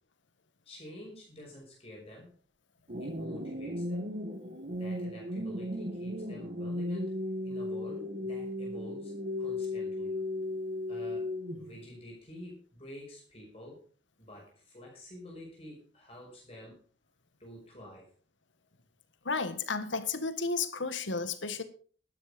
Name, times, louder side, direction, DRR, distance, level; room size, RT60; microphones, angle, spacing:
voice 1, 0.6-2.3 3.0-4.1 4.8-9.1 9.4-10.2 10.9-13.8 14.2-16.8 17.4-18.1, left 1 dB, 30° left, -2 dB, 6.0 m, -49 dB
sound 1, 2.9-11.9, left 1 dB, 45° right, 1.7 m, -36 dB
voice 2, 19.2-21.6, left 4 dB, 85° left, 12 dB, 1.5 m, -32 dB
12.5 x 12.0 x 5.2 m, 0.43 s
head